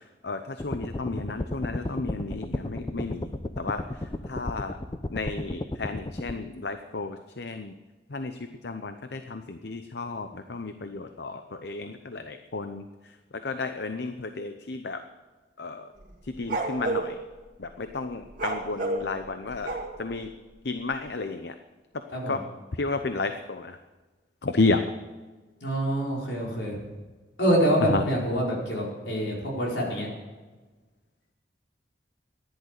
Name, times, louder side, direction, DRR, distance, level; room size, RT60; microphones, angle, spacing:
voice 1, 0.2-3.3 3.6-3.8 4.3-4.8 5.1-7.7 8.1-8.3 8.6-12.8 13.4-15.0 15.6-15.8 16.4-17.1 17.6-19.7 20.0-20.3 20.6-21.5 22.3-22.4 22.8-23.7 24.4-24.8 27.9-28.0, left 3 dB, 65° left, 8 dB, 0.8 m, -32 dB
sound 1, 0.6-6.3, left 1 dB, 25° left, 0.6 m, -34 dB
sound 2, 16.0-17.1 18.3-20.1, right 3 dB, 50° right, 2.6 m, -30 dB
voice 2, 25.6-26.8 27.4-30.1, equal, 80° left, -2 dB, 4.9 m, -26 dB
15.0 x 11.0 x 6.7 m, 1.3 s
head